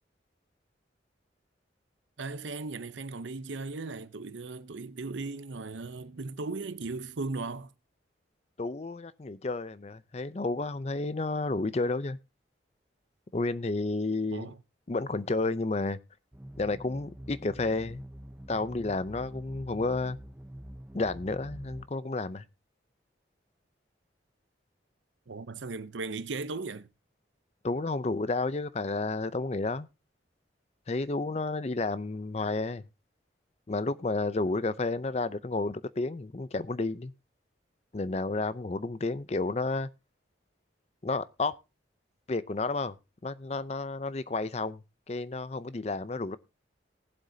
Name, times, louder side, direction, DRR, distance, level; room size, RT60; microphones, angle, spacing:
voice 1, 2.2-7.7 14.3-14.6 25.3-26.9, right 3 dB, 80° right, 0.7 m, -37 dB
voice 2, 8.6-12.2 13.3-14.5 14.9-16.0 16.6-18.0 18.5-20.2 20.9-22.4 27.6-29.9 30.9-32.8 33.7-37.1 37.9-39.9 41.0-41.6 42.3-42.9 43.2-44.8 45.1-46.4, left 3 dB, 35° left, 0.5 m, -31 dB
sound 1, 16.3-21.9, equal, 10° right, 0.7 m, -46 dB
19.5 x 7.7 x 2.7 m
head